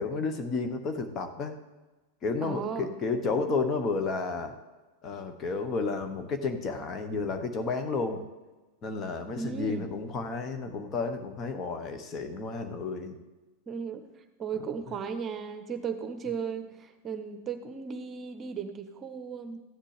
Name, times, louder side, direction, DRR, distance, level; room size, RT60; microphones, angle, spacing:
voice 1, 0.0-1.6 2.2-4.6 5.0-8.2 8.8-13.2, left 4 dB, 30° left, 7 dB, 1.1 m, -31 dB
voice 2, 2.4-2.9 9.4-9.9 13.7-14.1 14.4-19.6, right 6 dB, 30° right, 9 dB, 0.9 m, -36 dB
14.0 x 10.0 x 3.4 m, 1.2 s
figure-of-eight pair, 90°, 0 cm